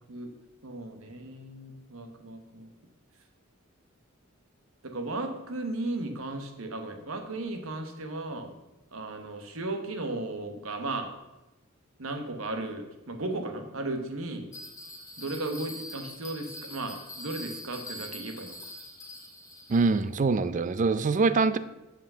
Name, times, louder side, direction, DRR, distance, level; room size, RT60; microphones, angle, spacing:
voice 1, 0.6-2.7 4.8-8.5 8.9-11.1 12.0-14.5 15.2-18.6, right 2 dB, 90° right, 5 dB, 1.2 m, -35 dB
Bell, 14.5-20.1, left 1 dB, 15° left, 1.4 m, -43 dB
voice 2, 19.7-21.6, right 4 dB, 40° right, 14 dB, 0.4 m, -24 dB
7.9 x 5.3 x 5.5 m, 1.0 s
head